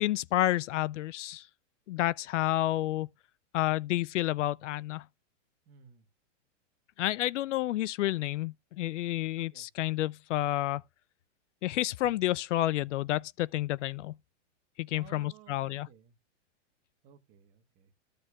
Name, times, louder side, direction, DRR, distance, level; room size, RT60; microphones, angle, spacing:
voice 1, 0.0-1.5 1.9-3.1 3.5-5.0 7.0-10.8 11.6-14.1 14.8-15.9, left 15 dB, 75° left, 0.5 m, -30 dB
voice 2, 5.6-6.1 9.4-9.7 14.9-16.1 17.0-17.9, right 9 dB, 20° right, 1.2 m, -56 dB
14.5 x 6.7 x 2.3 m
supercardioid pair, 170°, 37 cm